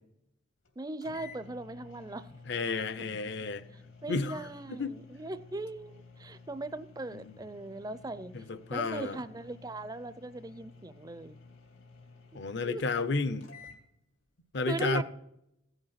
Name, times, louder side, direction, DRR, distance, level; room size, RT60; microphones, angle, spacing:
sound 1, 0.7-0.8 1.0-13.8, left 4 dB, 80° left, 2.7 m, -53 dB
voice 1, 0.8-2.3 4.0-8.3 8.7-11.4 12.6-12.8 14.7-15.0, right 2 dB, 20° right, 0.5 m, -39 dB
voice 2, 2.5-3.7 4.1-4.4 4.7-4.9 7.1-7.3 8.3-9.2 12.3-13.5 14.5-15.0, left 3 dB, 60° left, 0.7 m, -32 dB
15.5 x 8.0 x 5.8 m
head